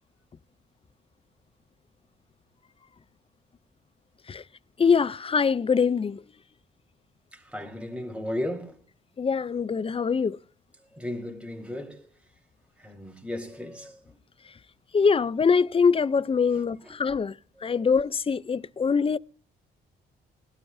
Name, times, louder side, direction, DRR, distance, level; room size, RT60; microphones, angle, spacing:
voice 1, 4.8-6.2 9.2-10.4 14.9-17.3 17.6-19.2, left 5 dB, 30° left, 0.6 m, -23 dB
voice 2, 7.3-8.8 10.9-12.1 12.8-14.2 16.8-17.0 17.6-17.9, left 1 dB, 5° right, 4.3 m, -35 dB
22.0 x 12.5 x 2.7 m
cardioid pair, 90°, 20 cm